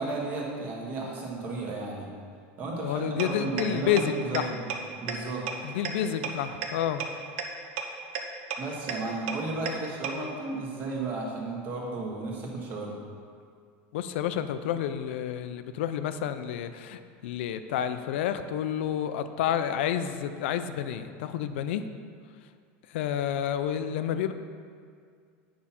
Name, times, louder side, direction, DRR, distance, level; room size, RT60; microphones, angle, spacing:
voice 1, 0.0-2.1 2.6-4.7 5.0-5.5 8.6-13.0, right 2 dB, 30° right, -2 dB, 1.4 m, -34 dB
voice 2, 2.8-4.5 5.6-7.0 13.9-21.8 22.9-24.3, left 9 dB, 80° left, 10 dB, 0.5 m, -29 dB
sound 1, 3.2-3.3 3.6-3.7 4.0-4.1 4.3-4.4 4.7-4.8 5.1-5.2 5.5-5.6 5.8-5.9 6.2-6.3 6.6-6.7 7.0-7.1 7.4-7.5 7.8-7.9 8.1-8.2 8.5-8.6 8.9-9.0 9.3-9.4 9.7-9.8 10.0-10.1, right 10 dB, 65° right, 0.8 m, -30 dB
8.6 x 5.6 x 4.2 m, 2.1 s
supercardioid pair, 170°, 6 cm